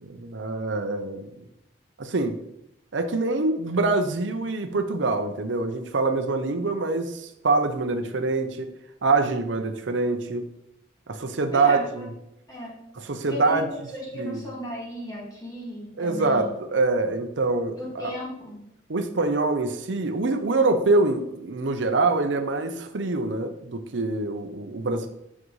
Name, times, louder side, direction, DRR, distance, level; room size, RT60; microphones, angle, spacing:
voice 1, 0.0-1.3 2.0-2.4 2.9-8.7 9.0-10.5 11.1-12.1 13.0-13.7 14.1-14.5 16.0-18.1 18.9-25.1, right 3 dB, 75° right, 7 dB, 0.7 m, -25 dB
voice 2, 11.5-12.1 12.5-12.7 13.3-13.6 13.9-16.5 17.8-18.6, left 1 dB, 20° left, -4 dB, 2.1 m, -35 dB
7.6 x 6.0 x 3.2 m, 0.80 s
head